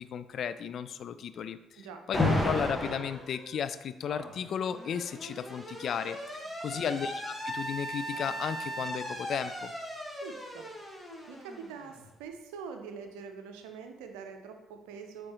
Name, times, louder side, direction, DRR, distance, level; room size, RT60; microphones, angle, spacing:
voice 1, 0.0-1.8 2.1-9.7, left 8 dB, 55° left, 13 dB, 0.3 m, -35 dB
Alarm, 2.1-3.1 4.3-12.0, left 1 dB, 10° left, 1.5 m, -35 dB
Human voice, 2.5-3.6 4.0-6.4 6.7-7.3 7.9-8.7, right 1 dB, 20° right, 1.5 m, -52 dB
voice 2, 10.2-10.9 11.3-15.3, right 6 dB, 75° right, 5 dB, 0.6 m, -44 dB
8.5 x 3.7 x 3.0 m, 1.0 s
hypercardioid pair, 45°, 0 cm